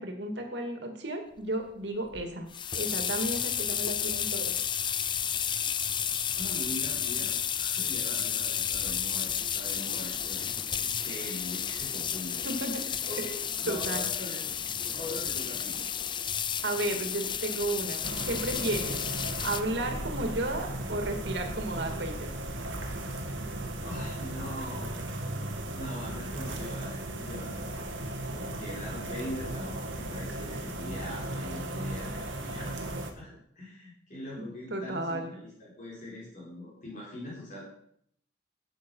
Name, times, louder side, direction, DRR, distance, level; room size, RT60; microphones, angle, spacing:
voice 1, 0.0-2.5 2.7-4.5 12.4-12.8 13.7-14.0 16.6-18.9 19.4-22.3 34.4-35.3, right 1 dB, 60° right, 4 dB, 2.4 m, -33 dB
sound 1, 2.1-19.6, left 8 dB, 25° left, 0.5 m, -32 dB
voice 2, 6.4-12.4 13.1-14.5 14.9-15.8 23.8-25.2 25.7-27.9 28.3-32.8 33.2-33.3 33.6-37.6, left 1 dB, 40° left, -5 dB, 4.3 m, -42 dB
sound 2, 18.0-33.1, right 1 dB, 75° right, 1.8 m, -36 dB
12.5 x 8.9 x 5.6 m, 0.68 s
head